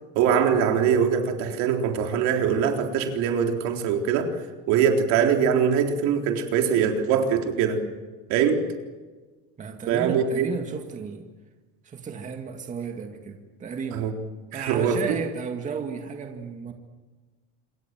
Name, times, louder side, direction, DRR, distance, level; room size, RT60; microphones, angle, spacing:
voice 1, 0.1-4.4 4.7-7.8 8.3-8.6 9.9-10.5 13.9-14.1 14.5-15.2, right 7 dB, 65° right, 3 dB, 3.9 m, -22 dB
voice 2, 9.6-11.3 11.8-14.1 14.5-16.7, right 6 dB, 25° right, 4 dB, 2.1 m, -34 dB
27.0 x 24.0 x 7.6 m, 1.3 s
cardioid pair, 140°, 30 cm